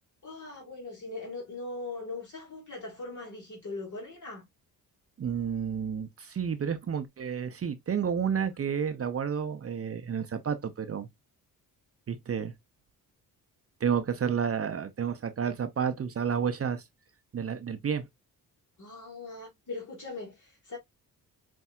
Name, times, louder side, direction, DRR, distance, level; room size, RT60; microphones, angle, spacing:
voice 1, 0.2-4.5 18.8-20.8, left 3 dB, 50° left, 1.8 m, -40 dB
voice 2, 5.2-11.1 12.1-12.5 13.8-16.8 17.3-18.1, right 7 dB, 40° right, 0.6 m, -30 dB
5.5 x 2.7 x 2.2 m
cardioid pair, 65°, 38 cm